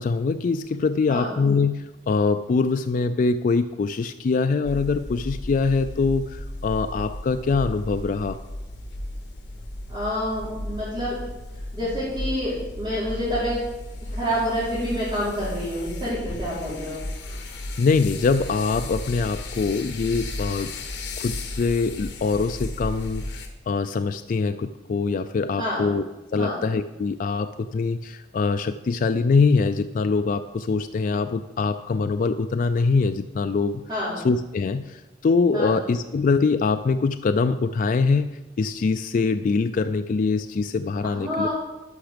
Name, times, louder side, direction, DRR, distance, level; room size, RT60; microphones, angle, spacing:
voice 1, 0.0-8.4 17.8-20.7 21.2-23.2 23.7-26.0 26.3-33.8 34.2-41.5, left 4 dB, 50° left, 9 dB, 0.3 m, -23 dB
sound 1, 4.6-23.5, left 1 dB, 70° left, 1.2 m, -34 dB
voice 2, 9.9-11.2 11.7-13.7 14.0-17.0 25.6-25.8 26.4-26.6 33.9-34.2 35.5-35.7 41.1-41.5, equal, 25° right, -13 dB, 3.7 m, -28 dB
12.0 x 5.9 x 5.1 m, 1.1 s
head